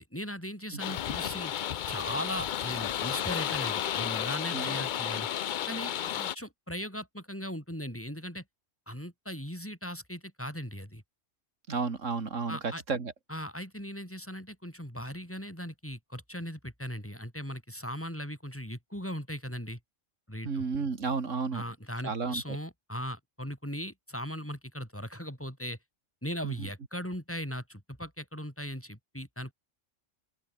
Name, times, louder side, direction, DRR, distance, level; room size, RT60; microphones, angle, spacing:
voice 1, 0.0-1.5 1.9-5.3 5.7-8.4 8.9-11.0 12.5-12.8 13.3-19.8 20.3-20.6 21.5-25.8 26.2-29.5, equal, 10° left, 7.3 m, -38 dB
sound 1, 0.8-6.4, left 10 dB, 55° left, 0.5 m, -32 dB
voice 2, 11.7-13.1 20.4-21.6 22.0-22.4 26.4-26.7, right 4 dB, 80° right, 2.5 m, -32 dB
open air
omnidirectional pair, 1.3 m